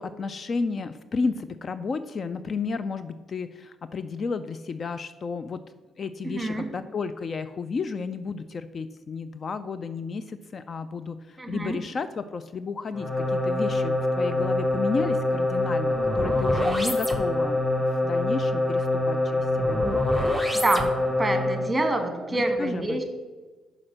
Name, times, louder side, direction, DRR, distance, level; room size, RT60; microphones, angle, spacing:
voice 1, 0.0-5.6 6.0-19.8 22.6-23.0, left 4 dB, 45° left, 12 dB, 0.3 m, -32 dB
voice 2, 6.2-6.7 11.4-11.8 20.5-20.9 21.2-23.0, right 2 dB, 15° right, 6 dB, 1.4 m, -26 dB
sound 1, 12.9-21.7, left 1 dB, 10° left, 0.9 m, -25 dB
6.0 x 4.9 x 6.4 m, 1.3 s
cardioid pair, 90°, 0 cm